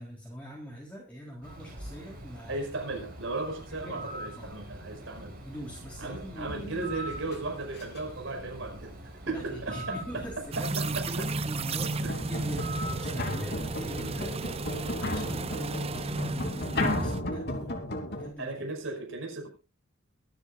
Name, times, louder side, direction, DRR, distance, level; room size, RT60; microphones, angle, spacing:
voice 1, 0.0-2.7 3.7-4.1 4.4-4.6 5.4-6.9 9.3-17.8 18.1-18.5, equal, 5° left, 3.7 m, -43 dB
Bird, 1.4-14.9, right 1 dB, 45° right, 5.6 m, -44 dB
voice 2, 2.5-5.4 6.0-8.9 9.3-10.2 10.6-11.1 12.0-12.2 18.4-19.5, right 2 dB, 60° right, 5.5 m, -36 dB
sound 1, 6.5-8.2 10.9-11.0 11.8-18.3, left 1 dB, 50° left, 2.9 m, -34 dB
sound 2, 10.5-17.2, right 3 dB, 30° right, 0.6 m, -33 dB
24.0 x 9.7 x 2.5 m
head